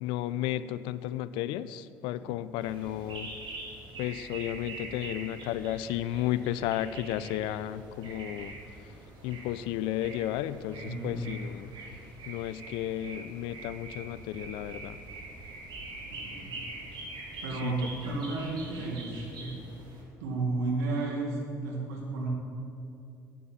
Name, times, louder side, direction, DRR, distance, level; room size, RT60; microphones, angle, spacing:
voice 1, 0.0-3.3 4.0-8.5 9.2-11.7 12.3-15.0 17.6-17.7, left 12 dB, 70° left, 15 dB, 0.4 m, -33 dB
sound 1, 2.6-20.0, right 2 dB, 55° right, 2.5 m, -44 dB
voice 2, 10.8-11.2 16.3-16.5 17.4-19.6 20.2-22.3, right 3 dB, 85° right, -1 dB, 1.9 m, -32 dB
8.6 x 7.0 x 7.2 m, 2.7 s
hypercardioid pair, 60°, 9 cm